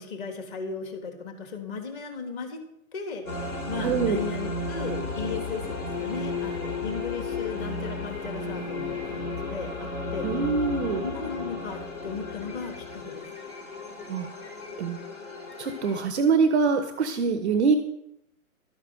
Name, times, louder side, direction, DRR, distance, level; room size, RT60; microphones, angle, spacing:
voice 1, 0.0-2.6 2.9-10.3 11.0-13.3, left 5 dB, 40° left, 3 dB, 3.2 m, -36 dB
sound 1, 3.2-16.0, left 3 dB, 80° left, 4.3 m, -33 dB
voice 2, 3.8-4.2 10.2-11.0 14.1-14.3 14.8-15.0 15.6-17.7, right 5 dB, 5° right, 7 dB, 0.4 m, -24 dB
12.5 x 9.5 x 6.4 m, 0.80 s
hypercardioid pair, 135°, 42 cm